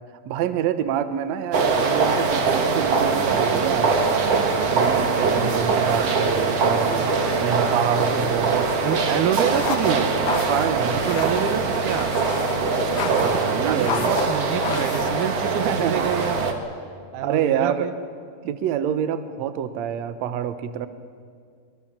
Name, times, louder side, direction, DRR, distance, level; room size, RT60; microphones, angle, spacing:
voice 1, 0.3-4.3 4.7-7.1 7.4-8.7 10.5-11.0 13.1-14.1 15.6-16.1 17.2-17.9 18.4-20.9, right 9 dB, 90° right, 11 dB, 1.5 m, -26 dB
sound 1, 1.5-16.5, right 4 dB, 50° right, 2.2 m, -22 dB
voice 2, 8.8-10.1 10.9-12.2 12.9-16.5 17.1-17.9, right 9 dB, 70° right, 10 dB, 2.2 m, -27 dB
sound 2, 9.5-15.1, left 7 dB, 75° left, 1.3 m, -32 dB
24.0 x 21.5 x 7.4 m, 2.1 s
omnidirectional pair, 4.4 m